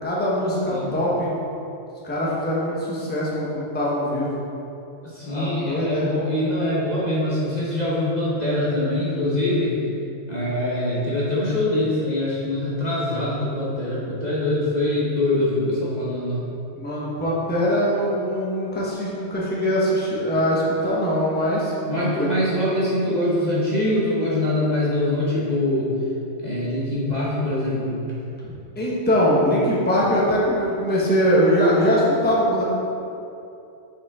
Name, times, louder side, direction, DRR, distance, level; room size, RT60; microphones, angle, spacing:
voice 1, 0.0-1.3 2.0-4.3 5.2-6.1 16.8-21.7 22.2-22.3 28.4-32.6, equal, 10° left, -6 dB, 1.0 m, -22 dB
voice 2, 5.0-9.8 10.3-16.5 21.9-25.9 26.4-28.0, left 1 dB, 35° left, -8 dB, 1.1 m, -23 dB
7.0 x 5.2 x 3.6 m, 2.7 s
omnidirectional pair, 1.4 m